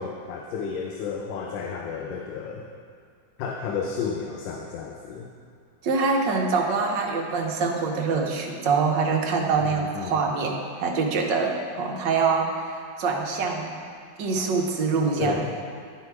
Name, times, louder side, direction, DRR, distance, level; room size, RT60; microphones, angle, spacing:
voice 1, 0.0-2.7 3.4-5.3 9.6-10.2 15.2-15.6, left 6 dB, 85° left, 0 dB, 1.4 m, -32 dB
voice 2, 5.8-12.5 13.0-13.7 14.2-15.4, right 4 dB, 80° right, 1 dB, 1.5 m, -24 dB
11.0 x 4.6 x 4.6 m, 2.3 s
omnidirectional pair, 2.0 m